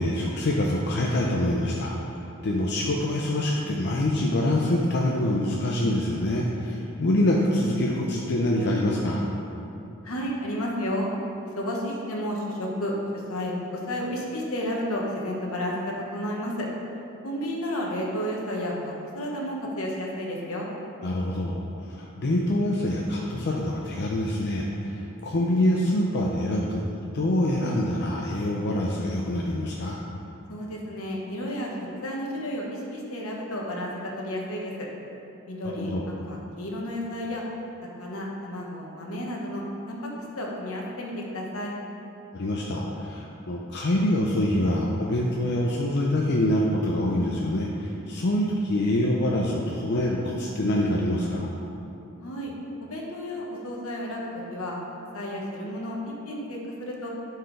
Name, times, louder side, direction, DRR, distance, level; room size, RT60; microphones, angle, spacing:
voice 1, 0.0-1.9 2.4-9.2 21.0-21.6 21.9-26.8 27.1-30.0 35.8-36.0 42.3-51.5, left 1 dB, 50° left, -2 dB, 0.6 m, -25 dB
voice 2, 10.0-11.1 11.5-16.7 17.2-20.7 30.5-34.9 35.5-35.9 36.3-37.4 38.0-41.7 52.2-52.5 52.8-54.8 55.1-56.0 56.3-57.1, equal, 80° left, -2 dB, 1.2 m, -32 dB
11.0 x 4.6 x 3.2 m, 2.9 s
head